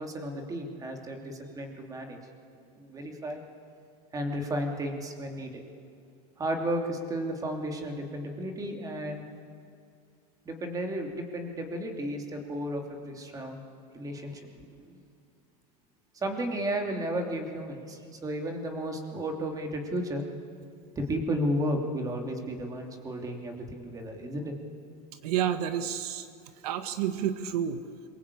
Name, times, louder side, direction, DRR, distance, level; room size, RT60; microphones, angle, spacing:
voice 1, 0.0-2.2 2.7-3.4 4.1-5.6 6.4-9.2 10.4-13.6 13.9-14.7 14.9-15.0 16.1-20.2 20.9-24.5, equal, 20° right, 3 dB, 3.0 m, -33 dB
voice 2, 25.2-26.3 26.6-27.8, right 9 dB, 80° right, 9 dB, 1.5 m, -29 dB
26.5 x 23.5 x 8.6 m, 2.4 s
supercardioid pair, 155°, 20 cm